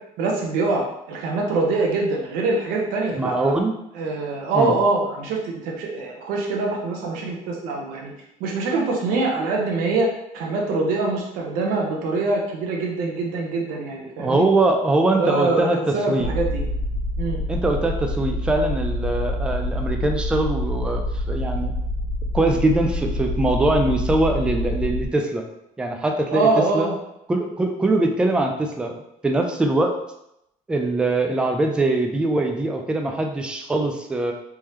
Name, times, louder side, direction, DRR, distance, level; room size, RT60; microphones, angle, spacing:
voice 1, 0.2-3.5 3.9-8.1 8.4-14.5 15.1-16.7 17.2-17.4 26.3-26.9, right 3 dB, 85° right, -1 dB, 0.9 m, -24 dB
voice 2, 3.1-3.7 4.5-4.8 14.2-16.3 17.5-21.7 22.3-25.5 25.8-26.9 27.3-28.9 29.2-30.0 30.7-34.3, right 2 dB, 5° right, 3 dB, 0.3 m, -22 dB
sound 1, 16.2-25.1, left 1 dB, 60° left, 0.7 m, -26 dB
3.5 x 2.9 x 3.1 m, 0.80 s
cardioid pair, 165°, 14 cm